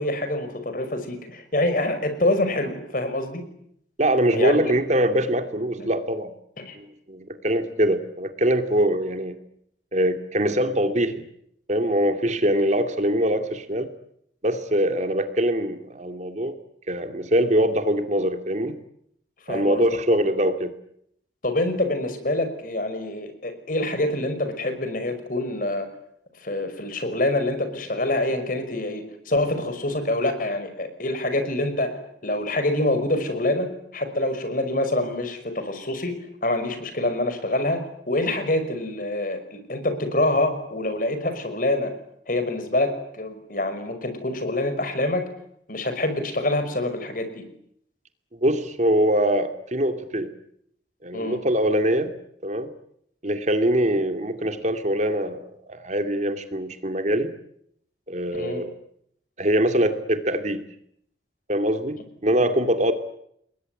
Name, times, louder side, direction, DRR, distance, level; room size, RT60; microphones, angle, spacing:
voice 1, 0.0-3.4 4.3-4.7 5.8-5.9 6.6-6.8 19.5-19.9 21.4-25.9 26.4-31.9 32.2-36.1 36.4-41.9 42.3-45.3 45.7-47.4 51.1-51.4 58.3-58.6 62.3-62.5, left 1 dB, 50° left, 9 dB, 5.5 m, -26 dB
voice 2, 4.0-6.3 7.1-9.4 9.9-11.2 11.7-13.9 14.4-16.6 16.9-18.8 19.5-20.7 48.3-50.3 51.0-52.1 52.4-52.7 53.2-57.3 58.1-58.7 59.4-60.6 61.5-62.9, right 1 dB, 40° right, 8 dB, 2.3 m, -23 dB
29.0 x 21.5 x 9.6 m, 0.72 s
head